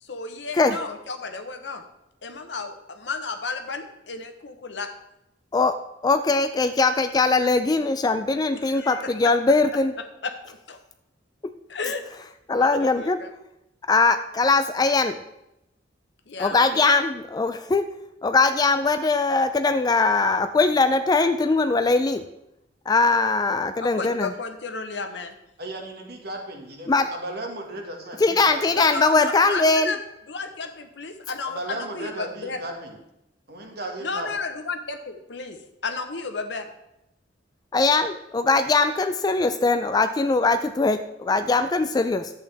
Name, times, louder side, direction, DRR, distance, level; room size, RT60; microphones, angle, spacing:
voice 1, 0.0-1.8 2.2-4.9 8.5-9.3 10.0-10.8 11.7-12.0 12.6-13.3 16.3-16.8 24.0-25.3 27.0-27.1 28.7-30.0 30.3-32.6 34.0-35.6 35.8-36.7, left 4 dB, 70° left, 7 dB, 1.0 m, -33 dB
voice 2, 6.0-9.9 12.5-13.2 13.9-15.2 16.4-17.9 18.2-22.2 22.9-24.3 26.9-27.1 28.2-29.9 37.7-42.3, left 3 dB, 20° left, 10 dB, 0.3 m, -21 dB
voice 3, 25.6-28.8 31.5-33.0 33.5-34.3, right 1 dB, 60° right, 2 dB, 1.7 m, -35 dB
11.0 x 8.2 x 3.4 m, 0.87 s
head